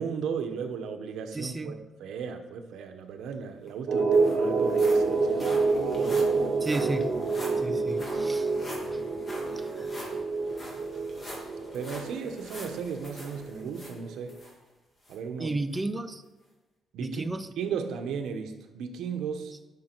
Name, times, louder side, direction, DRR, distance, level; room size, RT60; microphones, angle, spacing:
voice 1, 0.0-5.5 5.9-6.3 11.7-14.3 15.1-15.5 16.9-17.2 17.6-19.5, right 6 dB, 90° right, 6 dB, 1.1 m, -35 dB
voice 2, 1.3-1.8 6.6-7.1 7.6-8.5 8.9-9.0 9.5-9.9 15.4-16.2 17.0-17.5, right 2 dB, 15° right, 10 dB, 0.5 m, -33 dB
sound 1, 3.3-3.4 3.7-14.5 15.0-15.2 15.7-15.8, equal, 25° left, 2.1 m, -45 dB
sound 2, 3.9-14.3, right 4 dB, 60° right, 2.0 m, -28 dB
12.0 x 6.1 x 4.6 m, 1.1 s
cardioid pair, 140°, 0 cm